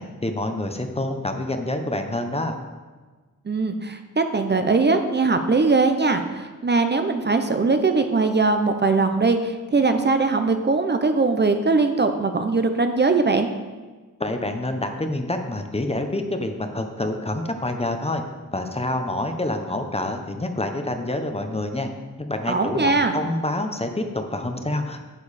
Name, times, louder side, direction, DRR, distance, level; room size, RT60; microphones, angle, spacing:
voice 1, 0.0-2.6 14.2-18.2 18.5-21.9 22.2-25.0, left 1 dB, 20° left, 6 dB, 0.7 m, -27 dB
voice 2, 3.5-13.5 22.5-23.1, right 3 dB, 35° right, 7 dB, 0.6 m, -21 dB
9.9 x 6.7 x 4.1 m, 1.4 s
wide cardioid pair, 105°, 32 cm